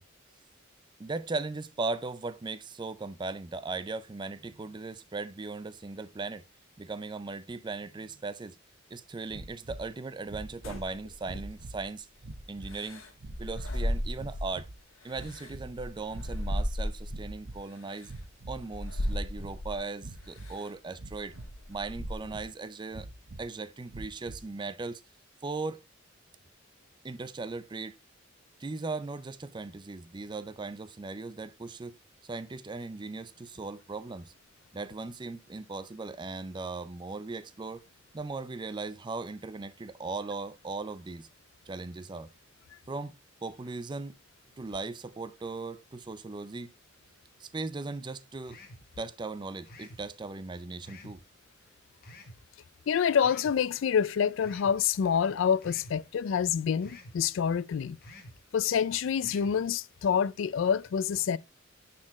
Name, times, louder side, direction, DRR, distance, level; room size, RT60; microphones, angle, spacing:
voice 1, 1.0-6.4 6.8-8.6 8.9-12.1 12.5-13.0 13.4-14.7 15.0-18.1 18.5-21.3 21.7-23.1 23.4-25.0 25.4-25.8 27.0-28.0 28.6-32.0 32.2-34.3 34.7-37.8 38.1-41.3 41.7-42.3 42.9-44.2 44.6-46.7 47.4-48.6 49.0-51.2, right 3 dB, 20° right, 0.4 m, -38 dB
sound 1, 9.3-9.9 10.2-10.9 11.2-11.8 12.2-12.8 13.2-13.7 14.1-14.8 15.1-15.8 16.1-16.7 17.0-17.6 18.0-18.7 19.0-19.6 20.0-20.5 21.0-21.6 21.9-22.5 22.9-23.4 23.9-24.5, right 2 dB, 60° right, 0.9 m, -44 dB
sound 2, 10.6-11.8 12.7-14.6 15.0-17.3 17.9-18.1 18.7-19.8 20.4-20.7 21.1-22.4, equal, 80° left, 1.6 m, -35 dB
sound 3, 48.5-48.9 49.7-50.0 50.8-51.2 52.0-52.4 53.2-53.6 54.4-54.8 55.6-56.0 56.8-57.2 58.0-58.4 59.2-59.6, left 1 dB, 50° left, 1.3 m, -49 dB
voice 2, 52.9-58.0 58.5-61.4, left 7 dB, 65° left, 0.3 m, -27 dB
9.7 x 4.3 x 3.0 m
head